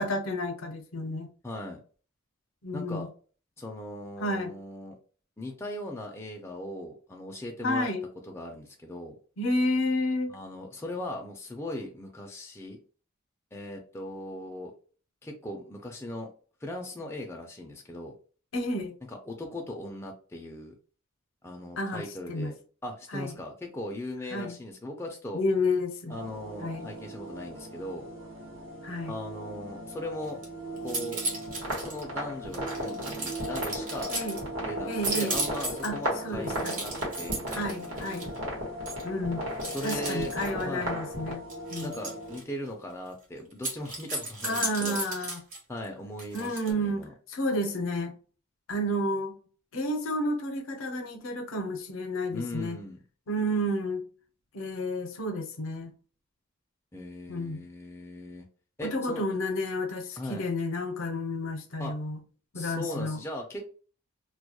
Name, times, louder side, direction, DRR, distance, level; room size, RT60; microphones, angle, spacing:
voice 1, 0.0-1.3 2.6-3.1 4.2-4.5 7.6-8.0 9.4-10.4 18.5-18.9 21.8-22.5 23.1-23.3 24.3-24.6 25.3-26.2 26.6-26.9 28.8-29.1 34.1-34.4 34.9-35.4 35.8-36.0 36.2-36.8 37.5-38.3 39.0-39.4 39.8-41.4 41.7-41.9 44.4-45.4 46.3-48.1 48.7-49.4 49.7-52.8 53.3-54.0 54.5-55.9 57.3-57.6 58.8-62.2 62.5-63.2, left 1 dB, 75° left, 0.6 m, -31 dB
voice 2, 1.4-1.8 2.7-3.1 3.6-5.0 5.4-7.9 8.3-9.1 10.3-12.8 13.5-14.7 15.2-16.3 16.6-18.2 19.1-20.7 21.4-22.5 22.8-25.4 26.1-28.1 29.1-30.4 30.8-31.2 31.8-34.1 34.7-37.7 39.6-40.3 40.6-40.9 41.8-45.0 45.7-47.1 52.3-53.0 56.9-58.5 58.8-59.2 60.2-60.5 61.8-61.9 62.5-63.7, left 1 dB, 10° left, 0.3 m, -38 dB
sound 1, 26.1-42.4, equal, 70° right, 0.7 m, -40 dB
sound 2, 30.2-30.5 30.8-32.0 32.5-34.4 34.9-36.0 36.5-38.4 38.9-39.0 39.6-40.6 41.5-42.4 43.5-45.6 46.2-46.7, right 2 dB, 40° right, 0.7 m, -35 dB
sound 3, 31.5-41.3, right 1 dB, 85° right, 1.1 m, -36 dB
2.2 x 2.1 x 2.7 m
head